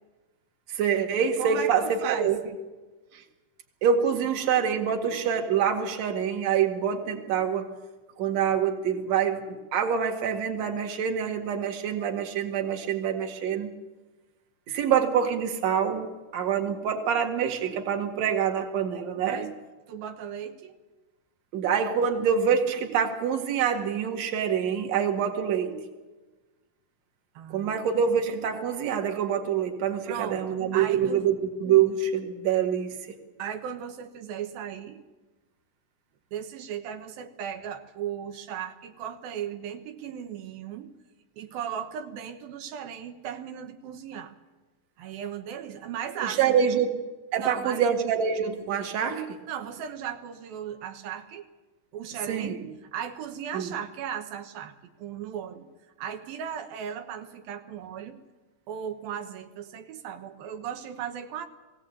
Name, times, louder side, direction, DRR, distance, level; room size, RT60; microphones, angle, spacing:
voice 1, 0.7-2.4 3.1-3.2 3.8-7.7 8.2-13.7 14.7-19.4 21.5-25.8 27.5-31.3 31.6-33.0 46.2-47.0 47.3-49.4 52.3-52.7 53.5-53.7, right 7 dB, 55° right, 4 dB, 3.0 m, -26 dB
voice 2, 1.4-2.3 19.2-19.5 19.9-20.8 27.3-27.8 30.1-30.4 30.7-31.3 33.4-35.0 36.3-40.9 41.4-44.3 45.0-46.8 47.4-47.8 49.5-51.5 51.9-55.7 56.0-58.2 58.7-61.5, right 8 dB, 85° right, 6 dB, 2.9 m, -36 dB
21.0 x 17.0 x 8.4 m, 1.2 s
omnidirectional pair, 4.1 m